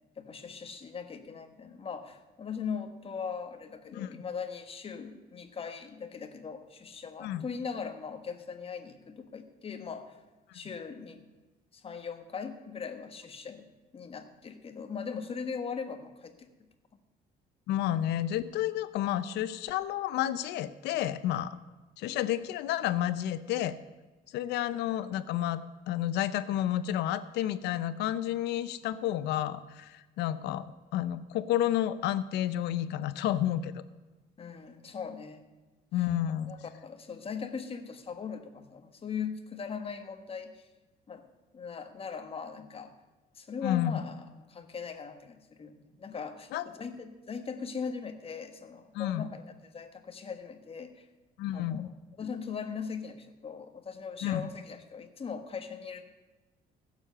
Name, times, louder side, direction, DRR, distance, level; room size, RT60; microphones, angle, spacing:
voice 1, 0.2-10.2 10.5-11.3 11.7-16.5 34.4-35.5 36.5-40.7 41.1-41.3 41.5-42.9 43.3-51.1 51.5-51.9 52.2-56.0, left 6 dB, 35° left, 8 dB, 1.4 m, -40 dB
voice 2, 17.7-21.6 22.0-23.7 24.3-25.6 25.9-30.7 30.9-33.8 35.9-36.5 43.6-44.0 46.5-46.6 48.9-49.3 51.4-51.9 54.2-54.5, left 12 dB, 85° left, 14 dB, 0.7 m, -30 dB
16.0 x 7.3 x 6.7 m, 1.2 s
cardioid pair, 110°, 17 cm